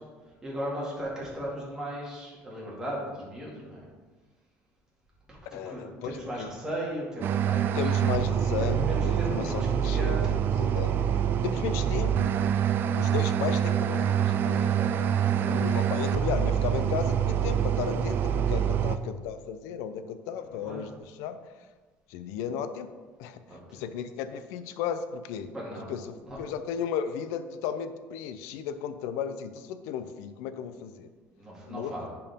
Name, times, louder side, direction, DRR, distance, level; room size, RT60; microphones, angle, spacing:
voice 1, 0.4-3.8 5.5-7.9 8.6-10.4 13.4-13.5 14.5-15.6 20.5-20.8 23.5-23.8 25.5-25.9 26.3-26.4 31.4-32.1, equal, 15° right, -5 dB, 2.3 m, -37 dB
voice 2, 5.5-6.5 7.7-10.9 11.4-12.4 12.9-14.8 15.4-21.4 22.1-22.9 23.2-23.4 23.7-25.5 25.9-31.1 31.7-32.1, left 8 dB, 85° left, 11 dB, 0.5 m, -35 dB
sound 1, 7.2-19.0, right 9 dB, 45° right, 0.4 m, -26 dB
10.5 x 4.6 x 3.6 m, 1.3 s
cardioid pair, 140°, 5 cm